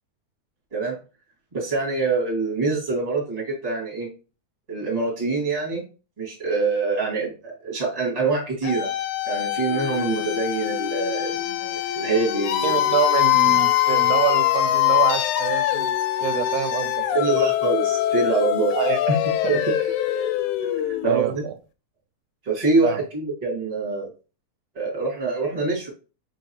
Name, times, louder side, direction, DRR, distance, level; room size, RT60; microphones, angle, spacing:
voice 1, 1.5-4.1 4.7-5.8 6.2-8.9 9.3-12.8 17.1-18.7 19.5-19.6 20.9-21.4 22.4-24.1 24.7-25.9, right 3 dB, 15° right, -4 dB, 1.6 m, -25 dB
sound 1, 8.6-21.5, left 13 dB, 85° left, 1.9 m, -23 dB
voice 2, 12.6-15.9 16.2-17.3 18.8-19.2 19.4-19.6 21.1-21.5 22.8-23.0, right 10 dB, 80° right, 8 dB, 1.9 m, -26 dB
5.0 x 3.7 x 2.8 m, 0.33 s
omnidirectional pair, 3.5 m